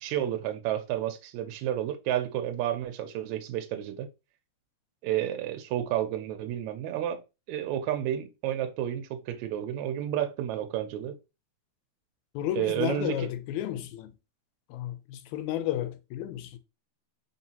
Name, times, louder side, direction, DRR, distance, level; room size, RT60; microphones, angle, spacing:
voice 1, 0.0-4.1 5.0-7.2 7.5-11.2 12.6-13.3, right 11 dB, 80° right, 1.8 m, -31 dB
voice 2, 12.4-14.1 14.7-16.6, left 12 dB, 80° left, 1.9 m, -32 dB
4.2 x 3.6 x 2.8 m
omnidirectional pair, 3.4 m